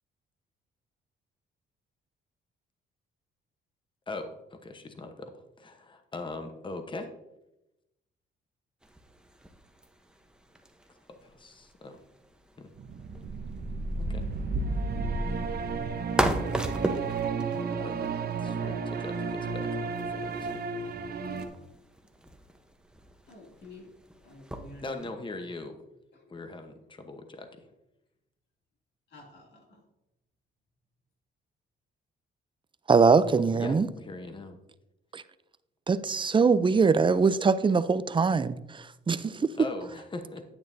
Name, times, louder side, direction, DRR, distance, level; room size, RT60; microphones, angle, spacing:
voice 1, 4.1-7.1 11.1-12.0 12.6-12.7 14.0-14.3 17.8-18.0 18.3-20.6 24.8-25.8 26.3-27.7 33.5-34.6 39.6-40.4, left 2 dB, 25° left, 7 dB, 1.0 m, -41 dB
sound 1, 8.8-25.1, right 1 dB, 5° right, 0.9 m, -38 dB
sound 2, 12.8-21.5, right 4 dB, 50° right, 0.9 m, -32 dB
voice 2, 23.3-23.9 24.2-25.1 26.2-26.3 29.1-29.8, left 2 dB, 60° left, 0 dB, 2.7 m, -50 dB
voice 3, 32.9-33.9 35.1-35.2 35.9-39.5, right 5 dB, 25° right, 14 dB, 0.4 m, -23 dB
10.0 x 8.8 x 2.7 m, 0.91 s
cardioid pair, 90°, 20 cm